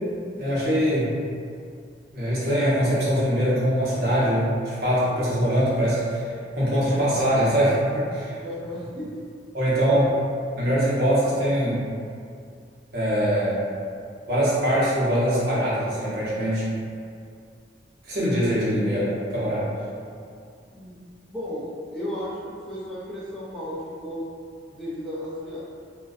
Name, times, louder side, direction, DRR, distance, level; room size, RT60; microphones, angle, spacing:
voice 1, 0.4-1.2 2.1-8.4 9.5-10.0 10.6-11.9 12.9-13.6 14.3-16.7 18.0-19.7, equal, 55° right, -8 dB, 0.7 m, -23 dB
voice 2, 8.4-9.2 9.8-10.0 20.7-21.0 21.3-21.7 21.9-24.2 24.7-25.6, equal, ahead, -11 dB, 0.4 m, -34 dB
2.5 x 2.1 x 2.3 m, 2.3 s
head